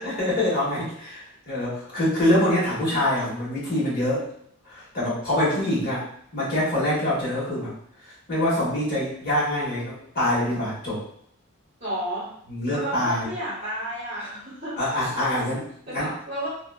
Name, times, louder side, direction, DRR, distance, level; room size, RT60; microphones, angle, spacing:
voice 1, 0.0-4.3 4.7-6.0 6.3-7.7 8.0-11.0 12.5-13.3 14.8-16.1, left 1 dB, 45° left, -8 dB, 1.3 m, -25 dB
voice 2, 11.8-12.3 12.7-14.8 15.9-16.5, right 1 dB, 30° right, -12 dB, 1.0 m, -32 dB
2.8 x 2.3 x 2.3 m, 0.65 s
head